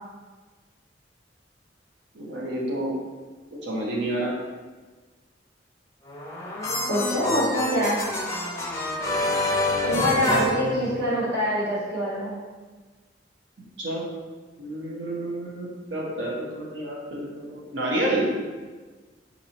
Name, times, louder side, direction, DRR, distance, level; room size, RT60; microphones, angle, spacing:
voice 1, 2.1-2.9 3.6-4.3 13.8-14.0 14.6-18.3, right 1 dB, 75° right, -4 dB, 1.0 m, -29 dB
sound 1, 6.1-11.4, left 2 dB, 15° left, 0.5 m, -27 dB
voice 2, 6.9-8.0 9.8-12.4, equal, 55° right, -7 dB, 1.2 m, -25 dB
4.2 x 2.7 x 2.9 m, 1.4 s
head